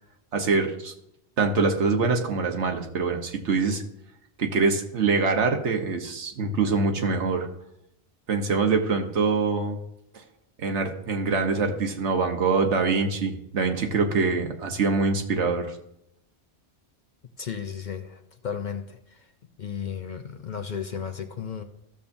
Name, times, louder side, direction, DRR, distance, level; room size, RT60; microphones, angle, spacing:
voice 1, 0.3-0.9 1.4-3.8 4.4-7.5 8.3-9.8 10.6-15.8, right 4 dB, 80° right, 4 dB, 1.3 m, -24 dB
voice 2, 17.4-19.3 19.6-21.6, left 7 dB, 50° left, 7 dB, 0.6 m, -34 dB
14.5 x 7.0 x 2.6 m, 0.80 s
omnidirectional pair, 1.2 m